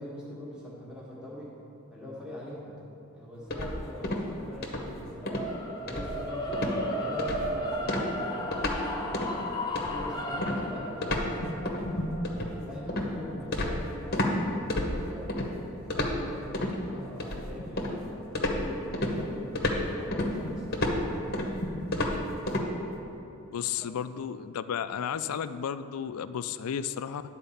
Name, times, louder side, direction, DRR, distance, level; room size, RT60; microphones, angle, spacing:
voice 1, 0.0-1.5 1.9-2.7 3.1-5.4 5.8-6.6 6.9-9.2 9.7-12.2 12.6-14.4 14.8-15.3 15.7-19.5 19.9-20.8 23.8-24.0, left 1 dB, 5° right, -7 dB, 1.5 m, -43 dB
sound 1, 3.5-4.3 4.6-4.9 5.3-5.5 5.9-6.3 6.5-6.8 7.2-7.5 7.9-8.8 9.1-9.4 9.7-14.3 14.7-15.5 15.9-16.7 17.2-18.0 18.3-22.7, left 1 dB, 45° left, 0.9 m, -30 dB
sound 2, 5.2-15.4, equal, 20° left, 0.6 m, -35 dB
voice 2, 23.5-27.2, left 8 dB, 90° left, 13 dB, 0.4 m, -33 dB
10.5 x 4.4 x 7.0 m, 2.9 s
head